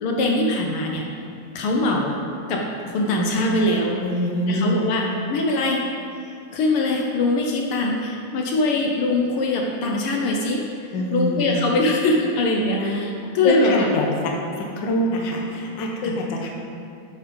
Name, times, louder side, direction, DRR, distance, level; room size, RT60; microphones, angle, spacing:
voice 1, 0.0-1.0 1.5-2.2 2.5-4.0 4.5-5.0 5.3-5.8 6.5-10.6 11.1-13.9 16.0-16.1, left 2 dB, 70° left, 0 dB, 1.3 m, -22 dB
voice 2, 4.0-5.2 10.9-11.6 12.8-13.1 13.4-14.3 14.6-16.5, left 1 dB, 90° left, 0 dB, 1.0 m, -24 dB
8.8 x 5.3 x 5.3 m, 2.6 s
omnidirectional pair, 3.4 m